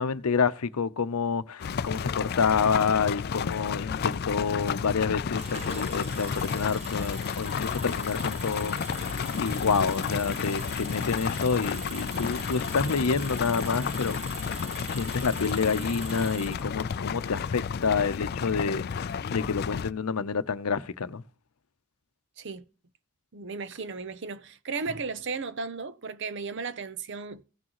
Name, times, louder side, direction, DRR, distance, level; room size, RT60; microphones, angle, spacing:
voice 1, 0.0-14.5 14.9-21.2, left 5 dB, 90° left, 0.7 m, -28 dB
sound 1, 1.6-19.9, left 6 dB, 45° left, 0.3 m, -32 dB
Engine, 5.3-17.0, right 3 dB, 30° right, 1.2 m, -42 dB
voice 2, 23.3-27.4, right 4 dB, 55° right, 0.7 m, -35 dB
16.0 x 6.3 x 3.0 m
head